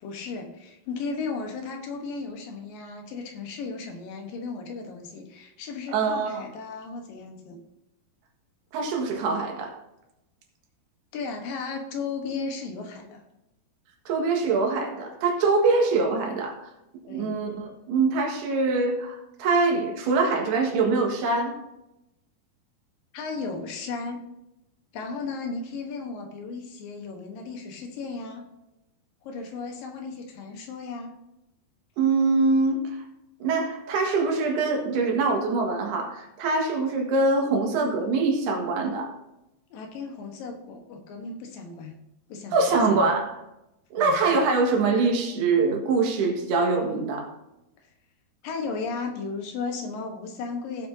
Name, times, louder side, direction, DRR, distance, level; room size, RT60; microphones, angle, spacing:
voice 1, 0.0-7.6 11.1-13.2 17.1-17.4 23.1-24.2 24.9-28.5 29.2-31.2 39.7-42.0 42.3-43.1 44.0-44.2 47.8-47.9 48.4-50.9, left 4 dB, 70° left, 4 dB, 2.7 m, -35 dB
voice 2, 5.9-6.4 8.7-9.8 14.1-16.6 17.0-21.6 32.0-33.0 33.4-39.1 42.5-43.4 43.9-47.3, right 3 dB, 85° right, 2 dB, 3.7 m, -24 dB
17.0 x 7.6 x 2.7 m, 0.90 s
omnidirectional pair, 4.5 m